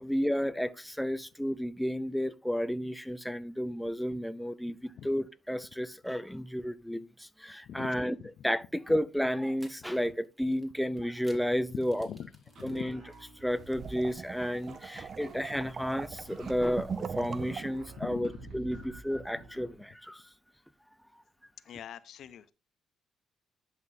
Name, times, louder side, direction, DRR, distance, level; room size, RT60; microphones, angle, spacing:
voice 1, 0.0-8.2 8.4-12.1 12.6-13.0 13.4-20.2, equal, ahead, 0.5 m, -32 dB
voice 2, 7.6-8.0 8.4-8.5 12.0-12.3 12.6-12.8 18.0-18.3 21.7-22.5, left 9 dB, 70° left, 0.6 m, -42 dB
sound 1, 8.4-8.6 9.5-13.9, right 1 dB, 15° right, 2.5 m, -60 dB
sound 2, 12.5-19.8, right 3 dB, 65° right, 3.3 m, -50 dB
sound 3, 13.6-17.9, right 6 dB, 45° right, 0.5 m, -40 dB
11.0 x 6.0 x 2.7 m
cardioid pair, 90°, 0 cm